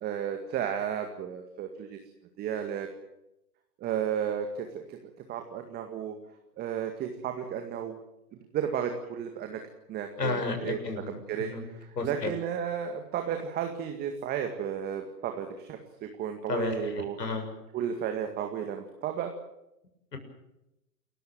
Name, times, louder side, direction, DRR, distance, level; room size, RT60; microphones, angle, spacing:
voice 1, 0.0-2.0 2.4-2.9 3.8-5.0 5.3-6.2 6.6-8.0 8.5-9.6 9.9-10.8 11.3-11.5 12.0-17.2 17.7-19.3, right 8 dB, 20° right, 5 dB, 2.0 m, -33 dB
voice 2, 10.2-11.6 12.0-12.3 16.5-17.5 20.1-20.2, left 4 dB, 70° left, 6 dB, 7.0 m, -32 dB
28.5 x 15.0 x 9.0 m, 0.88 s
figure-of-eight pair, 125°, 50 cm